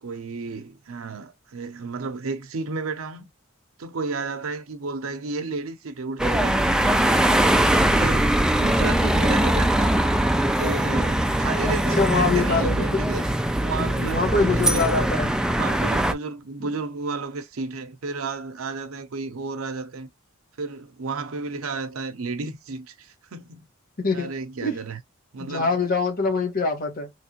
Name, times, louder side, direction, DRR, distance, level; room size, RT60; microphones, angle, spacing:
voice 1, 0.0-3.3 3.8-6.6 7.6-10.0 10.6-13.2 13.6-14.8 15.6-20.1 20.6-23.7 24.1-25.0 25.3-25.7, right 4 dB, 90° right, 0.7 m, -32 dB
sound 1, 6.2-16.1, right 1 dB, 5° right, 0.3 m, -21 dB
voice 2, 11.6-13.0 13.8-15.4 16.6-16.7 24.0-24.3 24.6-24.8 25.4-27.1, left 4 dB, 45° left, 1.4 m, -24 dB
3.5 x 3.1 x 2.9 m
head